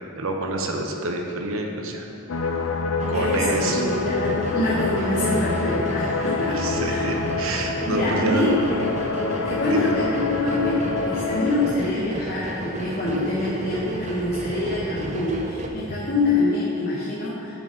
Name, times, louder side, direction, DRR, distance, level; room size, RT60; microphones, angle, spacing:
voice 1, 0.2-2.0 3.1-3.9 6.5-8.5 9.7-9.9, right 2 dB, 70° right, 2 dB, 0.8 m, -27 dB
sound 1, 2.3-11.7, left 4 dB, 65° left, 0.4 m, -26 dB
sound 2, 3.0-15.7, right 2 dB, 30° right, 0.5 m, -34 dB
voice 2, 3.1-7.0 7.9-8.8 9.4-17.6, left 2 dB, 40° left, -8 dB, 1.0 m, -25 dB
10.5 x 4.0 x 3.8 m, 2.6 s
head